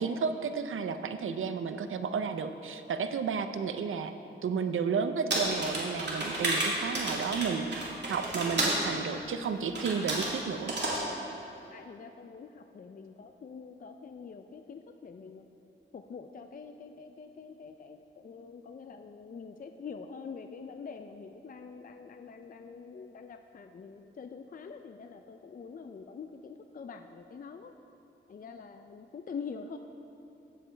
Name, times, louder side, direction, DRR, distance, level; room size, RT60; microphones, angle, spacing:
voice 1, 0.0-4.1 4.4-10.7, right 5 dB, 75° right, 9 dB, 0.6 m, -32 dB
sound 1, 5.3-8.8 9.8-10.3 10.7-11.0, right 2 dB, 55° right, 2.4 m, -31 dB
voice 2, 11.7-15.4 15.9-27.7 28.3-29.8, left 5 dB, 45° left, 7 dB, 0.4 m, -45 dB
16.0 x 7.3 x 3.3 m, 2.9 s
wide cardioid pair, 90°, 21 cm